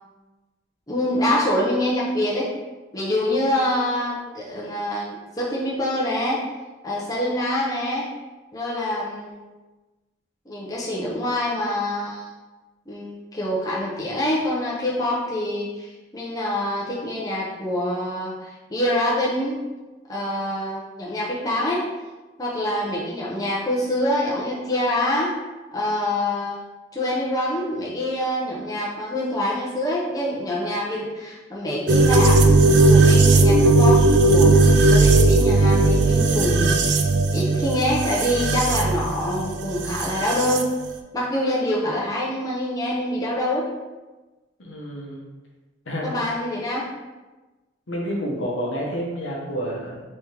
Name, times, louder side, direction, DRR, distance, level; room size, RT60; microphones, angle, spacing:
voice 1, 0.9-2.5 2.9-6.4 6.8-8.1 8.5-9.4 10.5-12.3 12.9-19.6 20.1-21.8 22.4-25.3 25.7-26.6 26.9-37.0 37.3-40.7 41.1-43.7 46.0-46.9, left 1 dB, 20° left, -6 dB, 0.6 m, -25 dB
sound 1, 31.9-40.6, right 2 dB, 60° right, 0.3 m, -17 dB
voice 2, 44.6-45.2 45.9-46.1 47.9-50.1, equal, 70° left, -2 dB, 0.8 m, -29 dB
3.5 x 3.2 x 2.9 m, 1.2 s
head